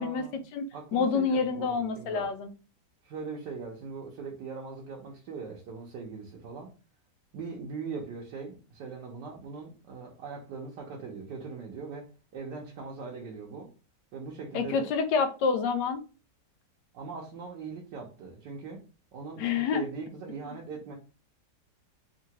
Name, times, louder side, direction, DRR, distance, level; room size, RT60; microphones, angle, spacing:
voice 1, 0.0-0.4 0.7-2.3 3.0-6.7 7.3-13.7 14.1-14.9 16.9-18.8 19.1-20.9, right 5 dB, 80° right, 1.3 m, -40 dB
voice 2, 0.5-2.5 14.5-16.0 19.4-19.8, left 5 dB, 80° left, 1.2 m, -28 dB
3.7 x 2.5 x 2.8 m
omnidirectional pair, 1.9 m